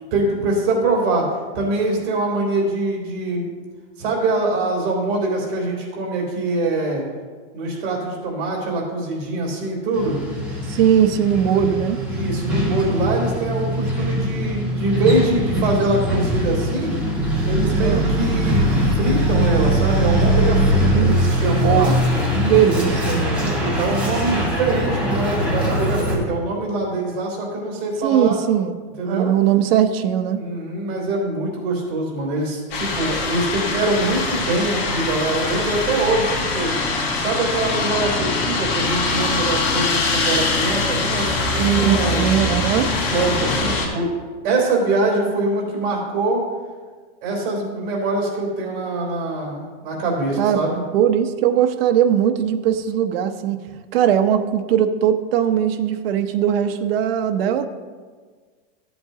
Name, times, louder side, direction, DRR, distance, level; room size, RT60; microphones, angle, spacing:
voice 1, 0.1-1.3 1.5-3.5 4.0-7.0 7.5-10.2 12.1-16.9 17.4-21.9 23.3-28.4 29.0-29.3 30.4-36.7 37.2-41.4 41.8-42.3 43.1-44.1 44.4-46.4 47.2-50.8, right 2 dB, 60° right, -2 dB, 3.3 m, -23 dB
Truck, 9.9-26.1, equal, 5° right, 2.1 m, -21 dB
voice 2, 10.7-12.0 17.8-18.1 20.9-21.1 21.6-21.9 22.3-23.5 28.0-28.7 29.1-30.4 41.3-42.9 50.4-50.6 50.9-53.6 53.9-57.7, right 9 dB, 75° right, 8 dB, 0.8 m, -19 dB
sound 1, 32.7-43.9, left 3 dB, 70° left, 2.6 m, -23 dB
15.0 x 7.9 x 2.8 m, 1.5 s
supercardioid pair, 175°, 29 cm